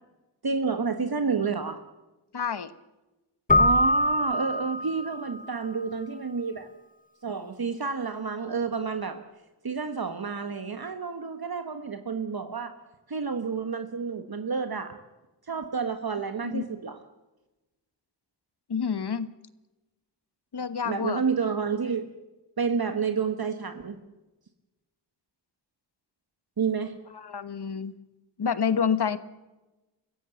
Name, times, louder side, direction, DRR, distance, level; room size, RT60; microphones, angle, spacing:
voice 1, 0.4-1.8 3.5-6.7 7.2-9.2 9.6-12.7 13.1-14.9 15.5-17.0 20.8-22.1 22.6-24.0 26.6-27.0, right 5 dB, 55° right, 7 dB, 1.4 m, -30 dB
voice 2, 2.3-2.7 16.4-16.6 18.7-19.3 20.5-21.2 27.1-27.9 28.4-29.2, left 6 dB, 60° left, 14 dB, 1.2 m, -28 dB
Keyboard (musical), 3.5-5.3, left 1 dB, 20° left, 1.1 m, -23 dB
24.5 x 15.5 x 7.1 m, 1.1 s
wide cardioid pair, 80°, 44 cm